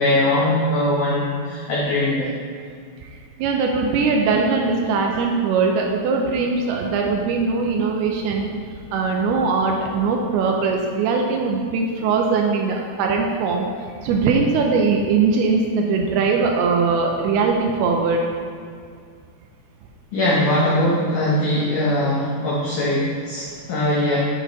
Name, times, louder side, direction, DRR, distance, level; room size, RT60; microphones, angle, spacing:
voice 1, 0.0-2.3 20.1-24.2, left 1 dB, 85° left, -5 dB, 1.8 m, -21 dB
voice 2, 3.4-8.5 8.9-13.7 14.0-18.3, right 4 dB, 80° right, 1 dB, 2.4 m, -20 dB
7.9 x 6.6 x 3.0 m, 2.2 s
omnidirectional pair, 4.9 m